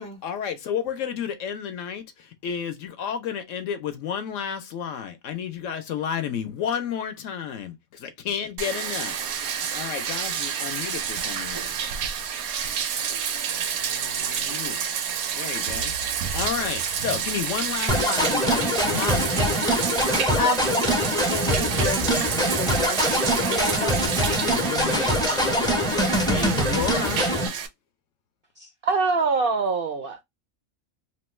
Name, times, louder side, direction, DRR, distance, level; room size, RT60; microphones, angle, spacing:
voice 1, 0.2-7.7 8.0-9.2 9.5-11.7 13.7-14.8 15.3-15.9 16.3-19.6 24.3-27.2, left 8 dB, 70° left, 0.9 m, -31 dB
Bathtub (filling or washing), 8.6-27.7, right 8 dB, 85° right, 1.1 m, -29 dB
sound 1, 17.9-27.5, equal, 5° left, 0.4 m, -24 dB
voice 2, 20.0-24.1, left 3 dB, 40° left, 0.9 m, -31 dB
voice 3, 28.6-30.2, right 4 dB, 65° right, 0.5 m, -24 dB
2.9 x 2.2 x 3.0 m
omnidirectional pair, 1.5 m